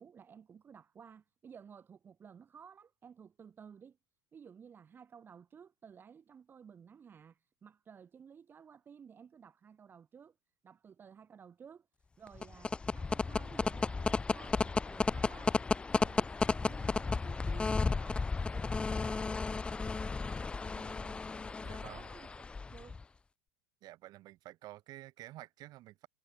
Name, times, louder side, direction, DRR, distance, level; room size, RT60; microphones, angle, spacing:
voice 1, 0.0-4.0 4.3-10.3 10.6-11.9 12.2-18.2 18.5-20.6 21.5-22.9, right 7 dB, 20° right, 1.7 m, -55 dB
sound 1, 12.3-23.0, left 4 dB, 10° left, 0.5 m, -33 dB
voice 2, 18.9-19.3 20.7-21.2 21.6-22.1 23.8-26.1, right 16 dB, 45° right, 5.7 m, -51 dB
supercardioid pair, 135°, 9 cm